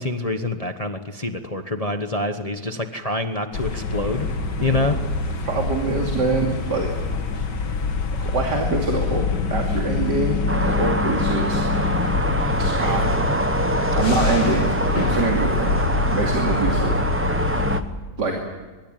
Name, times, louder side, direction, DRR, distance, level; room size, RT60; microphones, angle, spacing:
voice 1, 0.0-4.3 4.6-5.0, left 2 dB, 25° left, 6 dB, 1.1 m, -26 dB
sound 1, 3.5-17.8, left 3 dB, 85° left, 2.4 m, -25 dB
voice 2, 5.4-6.9 8.2-11.6 12.6-13.1 13.9-15.8 16.1-16.9 18.2-18.4, right 3 dB, 80° right, 1 dB, 3.4 m, -25 dB
sound 2, 10.5-17.8, right 1 dB, 10° right, 0.6 m, -25 dB
23.5 x 22.5 x 9.1 m, 1.3 s
omnidirectional pair, 1.8 m